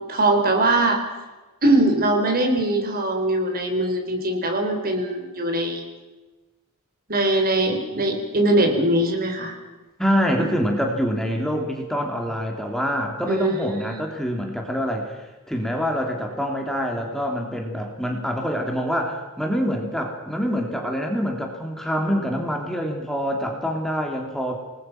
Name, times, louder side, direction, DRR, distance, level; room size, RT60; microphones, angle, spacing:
voice 1, 0.1-1.0 1.6-5.8 7.1-9.5 10.4-10.5 13.3-14.0, right 1 dB, 45° right, 5 dB, 4.4 m, -21 dB
voice 2, 10.0-24.6, equal, ahead, 1 dB, 3.2 m, -25 dB
28.5 x 20.5 x 6.1 m, 1.2 s
head